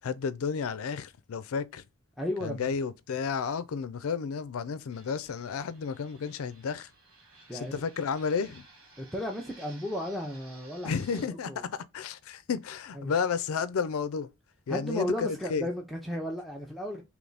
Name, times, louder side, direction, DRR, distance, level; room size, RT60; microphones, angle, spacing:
voice 1, 0.0-1.8 2.4-6.9 7.5-8.6 10.8-14.3 14.7-15.7, left 6 dB, 70° left, 0.4 m, -32 dB
voice 2, 2.2-2.7 7.5-7.8 9.0-11.7 12.9-13.1 14.7-17.0, left 1 dB, ahead, 0.5 m, -34 dB
Fixed-wing aircraft airplane, 4.9-11.3, right 3 dB, 75° right, 1.5 m, -55 dB
3.3 x 3.0 x 3.9 m
head